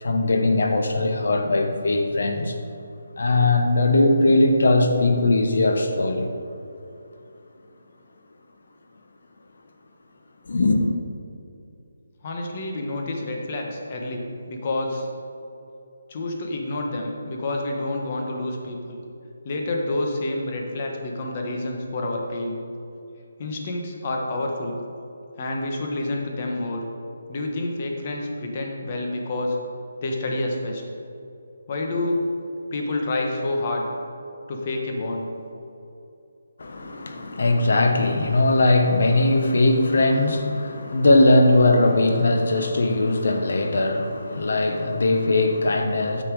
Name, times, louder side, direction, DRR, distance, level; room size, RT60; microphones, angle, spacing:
voice 1, 0.0-2.6 3.2-6.3 10.5-10.8 36.6-46.2, left 2 dB, 65° left, 5 dB, 1.1 m, -20 dB
voice 2, 12.2-15.1 16.1-19.0 19.4-22.6 23.4-24.8 25.4-26.9 27.3-29.6 30.0-30.8 31.7-32.2 32.7-33.8 34.5-35.3, left 2 dB, 35° left, 1 dB, 1.3 m, -28 dB
9.8 x 5.8 x 4.9 m, 2.7 s
hypercardioid pair, 170°, 0 cm